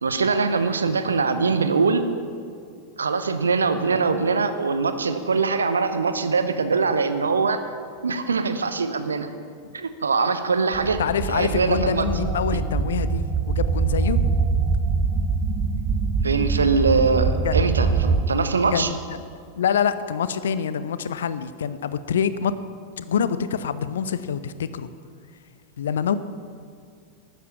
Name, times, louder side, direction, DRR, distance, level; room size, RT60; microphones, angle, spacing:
voice 1, 0.0-2.0 3.0-7.6 8.0-9.3 9.7-11.0 11.3-12.1 16.2-18.9, right 4 dB, 75° right, 9 dB, 0.9 m, -22 dB
sound 1, 10.7-18.3, right 5 dB, 30° right, 0.8 m, -23 dB
voice 2, 11.0-14.2 17.4-17.6 18.7-19.2 19.6-22.5 23.0-24.9 25.8-26.2, left 8 dB, 65° left, 14 dB, 0.6 m, -26 dB
12.5 x 9.0 x 7.4 m, 2.3 s
figure-of-eight pair, 90°, 0 cm